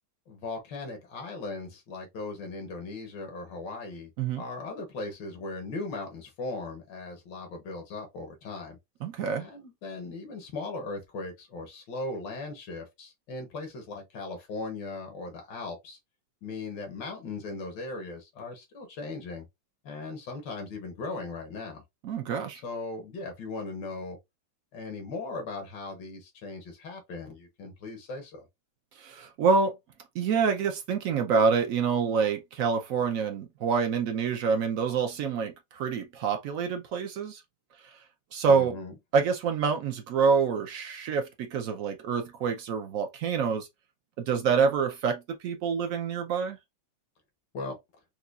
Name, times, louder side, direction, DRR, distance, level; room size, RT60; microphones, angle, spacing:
voice 1, 0.3-4.1 4.4-8.8 9.4-16.0 16.4-19.5 19.8-21.8 22.6-24.2 24.7-28.5 38.5-39.0 47.5-47.8, left 3 dB, 85° left, 1.8 m, -38 dB
voice 2, 9.0-9.5 22.0-22.6 29.0-29.7 30.1-37.4 37.8-38.0 38.3-38.7 39.1-43.7 44.2-46.6, right 5 dB, 70° right, 0.8 m, -27 dB
4.8 x 2.2 x 2.3 m
omnidirectional pair, 1.9 m